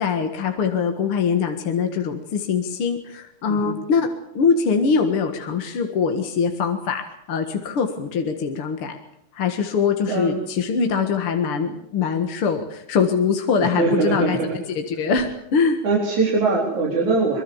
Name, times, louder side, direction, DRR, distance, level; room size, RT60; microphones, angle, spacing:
voice 1, 0.0-4.1 4.3-9.0 9.3-15.8, left 5 dB, 50° left, 5 dB, 2.4 m, -23 dB
voice 2, 10.1-10.4 13.6-14.4 15.8-17.4, right 3 dB, 75° right, -3 dB, 5.6 m, -22 dB
24.0 x 22.5 x 7.1 m, 0.76 s
omnidirectional pair, 3.4 m